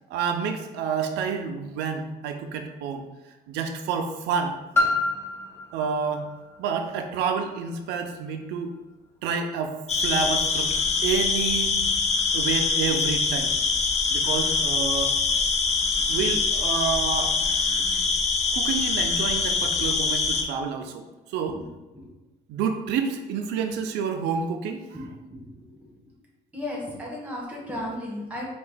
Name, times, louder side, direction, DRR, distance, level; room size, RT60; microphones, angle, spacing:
voice 1, 0.1-3.0 3.5-4.6 5.7-6.2 6.6-8.7 9.2-10.7 11.0-11.8 12.3-13.5 14.1-15.1 16.1-17.3 18.5-21.0 21.3-21.6 22.5-24.9, right 6 dB, 85° right, 6 dB, 0.5 m, -29 dB
Piano, 4.7-10.2 10.9-11.0, left 2 dB, 15° left, 0.9 m, -31 dB
sound 1, 9.9-20.4, left 4 dB, 40° left, 0.5 m, -24 dB
voice 2, 24.9-25.6 26.5-28.5, left 1 dB, 10° right, -3 dB, 1.3 m, -35 dB
4.4 x 2.4 x 3.8 m, 1.1 s
cardioid pair, 110°, 17 cm